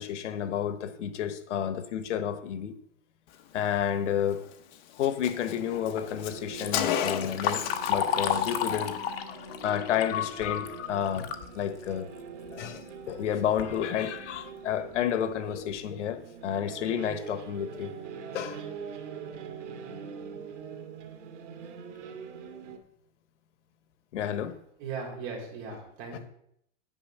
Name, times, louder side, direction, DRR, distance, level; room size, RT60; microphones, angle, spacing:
voice 1, 0.0-2.7 3.5-4.4 5.0-8.9 9.5-12.1 12.5-17.9 18.3-18.6 24.1-24.5 26.1-26.2, left 9 dB, 80° left, 1.3 m, -30 dB
Car, 4.3-4.4 4.7-4.8 5.0-8.0 8.2-8.5, left 9 dB, 40° left, 1.0 m, -33 dB
sound 1, 5.7-22.8, right 6 dB, 80° right, 2.2 m, -43 dB
Liquid, 6.4-11.5 11.9-12.0 12.9-13.0 13.4-13.7 14.3-14.4 14.9-15.0 15.5-15.7, left 8 dB, 55° left, 1.3 m, -32 dB
voice 2, 24.8-26.2, right 5 dB, 35° right, 4.4 m, -38 dB
9.9 x 6.3 x 8.1 m
supercardioid pair, 175°, 36 cm